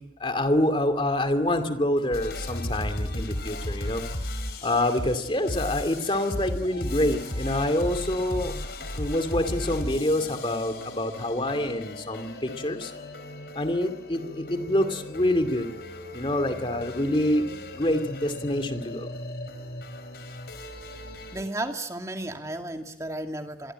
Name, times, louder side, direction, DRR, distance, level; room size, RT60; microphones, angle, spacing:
voice 1, 0.2-4.0 4.6-8.5 9.0-12.9 13.6-15.7 16.1-17.4 17.7-19.1, left 1 dB, 30° left, 8 dB, 2.4 m, -26 dB
sound 1, 2.1-21.4, left 1 dB, 60° left, 4.9 m, -36 dB
voice 2, 21.3-23.7, right 1 dB, 20° right, 4 dB, 2.4 m, -33 dB
28.0 x 23.5 x 9.0 m, 0.86 s
head